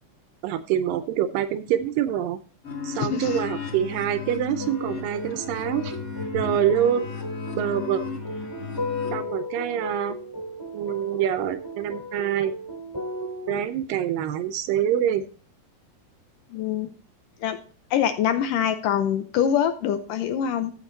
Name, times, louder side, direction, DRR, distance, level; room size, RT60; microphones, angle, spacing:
voice 1, 0.4-2.4 2.8-6.0 6.3-7.1 7.6-8.0 9.1-10.2 10.7-12.5 13.5-15.3, right 10 dB, 80° right, 11 dB, 2.1 m, -25 dB
sound 1, 2.6-9.2, left 6 dB, 35° left, 1.4 m, -34 dB
sound 2, 4.6-13.6, left 1 dB, 5° left, 2.5 m, -35 dB
voice 2, 16.5-16.9 17.4-17.6 17.9-20.7, left 9 dB, 80° left, 9 dB, 2.1 m, -24 dB
14.5 x 5.2 x 4.0 m, 0.39 s
omnidirectional pair, 4.3 m